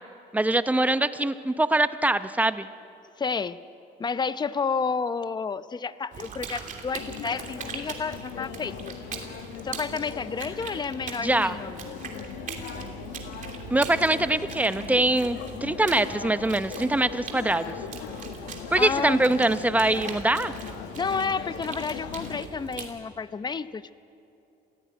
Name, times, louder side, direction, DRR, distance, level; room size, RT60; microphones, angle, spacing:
voice 1, 0.3-2.7 11.2-11.6 13.7-17.8 18.7-20.5, right 2 dB, 10° right, 12 dB, 0.8 m, -23 dB
voice 2, 3.2-3.6 4.0-9.0 9.6-11.7 18.8-19.2 21.0-23.9, left 5 dB, 25° left, 14 dB, 0.7 m, -30 dB
sound 1, 6.1-22.9, right 5 dB, 50° right, 2.9 m, -40 dB
sound 2, 6.9-22.4, left 11 dB, 90° left, 1.0 m, -40 dB
26.5 x 16.5 x 9.2 m, 2.7 s
cardioid pair, 110°, 17 cm